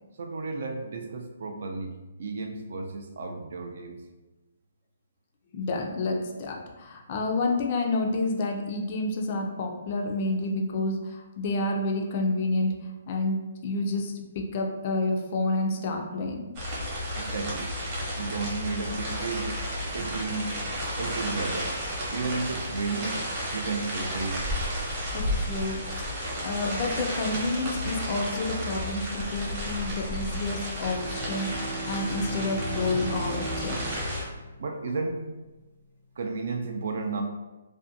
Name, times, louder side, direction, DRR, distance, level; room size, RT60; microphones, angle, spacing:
voice 1, 0.2-4.0 17.2-17.7 18.2-19.5 19.9-20.5 21.0-21.7 22.1-23.2 23.5-24.4 34.6-35.2 36.2-37.2, right 3 dB, 60° right, 4 dB, 0.4 m, -33 dB
voice 2, 5.5-12.8 13.1-16.4 25.1-33.8, left 2 dB, 35° left, 2 dB, 0.4 m, -29 dB
sound 1, 16.5-34.2, equal, 30° right, 0.8 m, -32 dB
Bowed string instrument, 30.4-35.2, right 2 dB, 90° left, 0.6 m, -39 dB
2.5 x 2.1 x 2.6 m, 1.1 s
hypercardioid pair, 160°, 0 cm